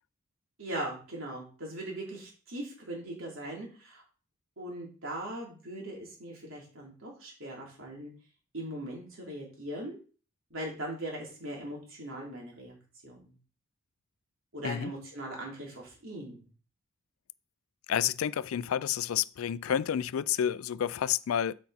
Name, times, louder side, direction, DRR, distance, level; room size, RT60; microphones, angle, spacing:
voice 1, 0.6-4.0 4.6-8.1 8.5-10.0 10.5-12.7 13.0-13.3 14.5-16.5, right 1 dB, 70° right, 3.4 m, -40 dB
voice 2, 17.9-21.5, left 9 dB, 80° left, 0.4 m, -30 dB
8.4 x 5.2 x 4.2 m
head